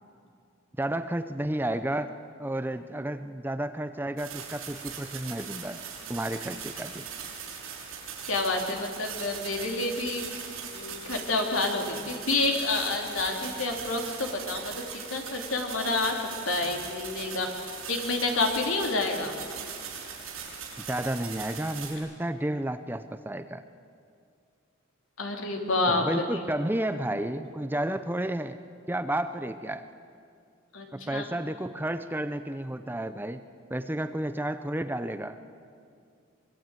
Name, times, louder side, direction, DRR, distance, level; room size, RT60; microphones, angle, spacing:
voice 1, 0.8-5.8 6.1-7.0 20.9-23.6 25.9-28.6 28.9-29.9 30.9-33.4 33.7-35.4, right 1 dB, 10° right, 10 dB, 0.6 m, -31 dB
sound 1, 4.2-21.9, right 7 dB, 80° right, 6.5 m, -40 dB
voice 2, 8.3-10.2 10.7-19.3 25.2-26.0 30.7-31.2, left 2 dB, 70° left, 2 dB, 3.4 m, -29 dB
24.5 x 22.5 x 9.1 m, 2.4 s
head